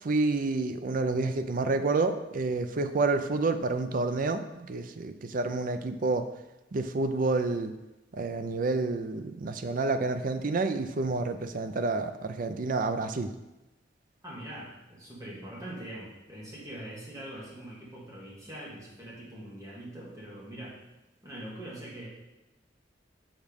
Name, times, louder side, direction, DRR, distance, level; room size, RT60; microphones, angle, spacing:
voice 1, 0.0-6.3 6.7-7.7 8.1-13.3, right 3 dB, 50° right, 8 dB, 0.5 m, -29 dB
voice 2, 14.2-20.8 21.2-22.1, right 1 dB, 20° right, -6 dB, 2.1 m, -43 dB
6.5 x 5.1 x 5.2 m, 0.99 s
head